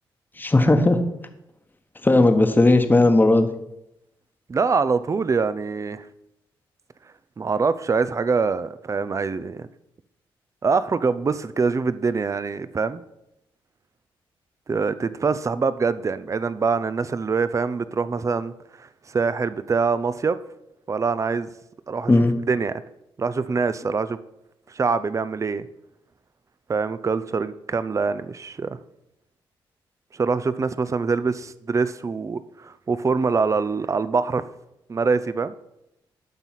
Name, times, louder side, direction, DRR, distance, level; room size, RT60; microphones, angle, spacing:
voice 1, 0.4-1.0 2.0-3.5 22.1-22.3, left 2 dB, 20° left, 7 dB, 1.1 m, -16 dB
voice 2, 4.5-6.1 7.4-9.7 10.6-13.0 14.7-20.4 20.9-21.5 21.9-22.8 23.2-24.2 24.7-25.7 26.7-28.8 30.1-34.4 34.9-35.5, right 4 dB, 35° right, 14 dB, 0.5 m, -24 dB
12.0 x 4.0 x 5.8 m, 0.84 s
cardioid pair, 65°, 9 cm